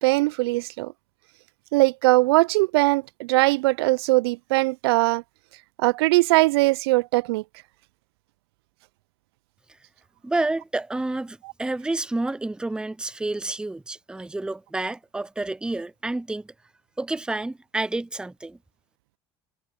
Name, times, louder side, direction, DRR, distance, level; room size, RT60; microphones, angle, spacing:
voice 1, 0.0-0.9 1.7-5.2 5.8-7.4, right 22 dB, 70° right, 0.6 m, -20 dB
voice 2, 10.2-16.5 17.0-18.6, right 2 dB, 5° right, 0.6 m, -29 dB
hypercardioid pair, 70°, 14 cm